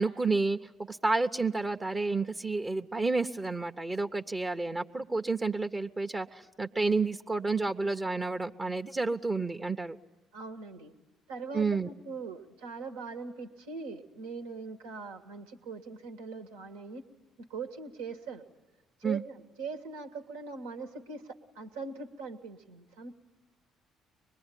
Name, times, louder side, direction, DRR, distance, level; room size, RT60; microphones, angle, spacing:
voice 1, 0.0-10.0 11.5-11.9 19.0-19.2, right 3 dB, 25° right, 6 dB, 0.9 m, -30 dB
voice 2, 10.3-10.9 11.3-17.0 17.4-18.4 19.0-23.1, right 4 dB, 80° right, 5 dB, 1.5 m, -41 dB
24.5 x 21.5 x 10.0 m, 1.1 s
hypercardioid pair, 50°, 0 cm